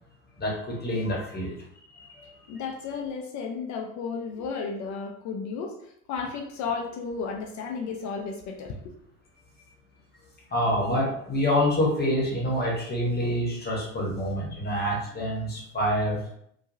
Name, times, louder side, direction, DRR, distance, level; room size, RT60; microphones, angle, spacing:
voice 1, 0.4-1.6 1.9-2.3 10.5-16.2, equal, 20° left, -2 dB, 1.1 m, -27 dB
voice 2, 2.5-8.9, left 5 dB, 40° left, 1 dB, 0.5 m, -33 dB
3.0 x 2.2 x 2.6 m, 0.70 s
hypercardioid pair, 75°, 44 cm